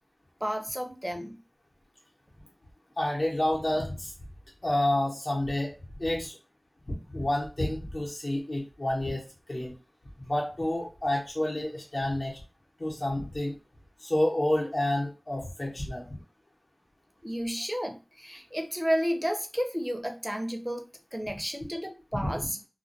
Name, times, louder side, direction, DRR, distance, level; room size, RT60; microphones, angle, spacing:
voice 1, 0.4-1.4 17.2-20.8 21.1-22.6, equal, 10° right, 5 dB, 0.5 m, -32 dB
voice 2, 3.0-4.1 4.6-5.7 6.0-6.4 6.9-9.2 9.5-9.7 10.2-12.4 12.8-13.6 14.0-16.2 22.2-22.3, left 1 dB, 60° left, -4 dB, 0.8 m, -29 dB
2.2 x 2.1 x 2.7 m, 0.32 s
wide cardioid pair, 40°, 0 cm